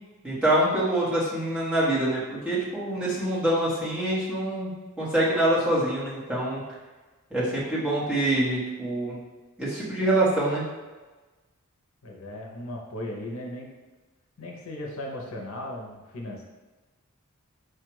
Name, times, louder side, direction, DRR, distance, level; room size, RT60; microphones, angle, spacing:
voice 1, 0.2-4.7 5.0-6.6 7.3-9.2 9.6-10.6, right 1 dB, 5° right, -9 dB, 1.3 m, -25 dB
voice 2, 12.0-13.7 14.4-16.4, left 1 dB, 75° left, 0 dB, 0.8 m, -37 dB
4.6 x 2.4 x 4.7 m, 1.2 s
head